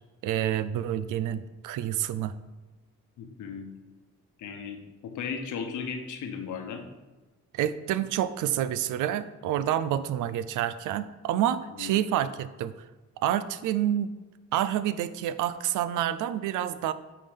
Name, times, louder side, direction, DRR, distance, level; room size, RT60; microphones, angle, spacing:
voice 1, 0.2-2.3 7.5-12.7 13.2-14.1 14.5-16.9, right 11 dB, 90° right, 14 dB, 0.5 m, -28 dB
voice 2, 3.2-3.7 4.4-6.8 11.7-12.1, left 6 dB, 80° left, 5 dB, 1.2 m, -36 dB
9.4 x 3.8 x 5.2 m, 1.2 s
cardioid pair, 90°, 30 cm